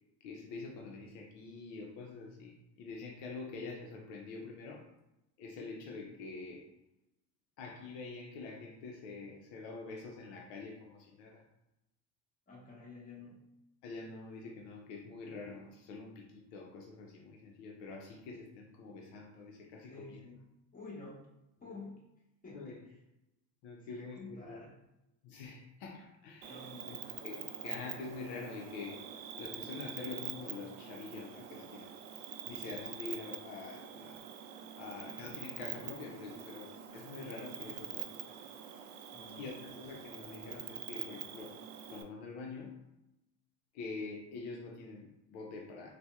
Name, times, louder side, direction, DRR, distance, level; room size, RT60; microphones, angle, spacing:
voice 1, 0.2-4.9 5.4-6.6 7.6-11.4 13.8-20.2 22.5-22.8 23.6-24.7 25.2-31.9 32.5-34.2 34.8-38.4 39.4-41.6 41.9-42.8 43.7-45.9, left 4 dB, 70° left, 0 dB, 0.6 m, -46 dB
voice 2, 12.5-13.4 19.8-20.4 20.7-21.2 21.6-22.1 22.4-23.0 23.9-24.7 26.4-27.0 39.1-39.6, left 3 dB, 20° left, -5 dB, 1.2 m, -50 dB
Cricket, 26.4-42.0, right 9 dB, 90° right, 0.5 m, -45 dB
4.1 x 2.1 x 2.3 m, 0.91 s
supercardioid pair, 105°, 40 cm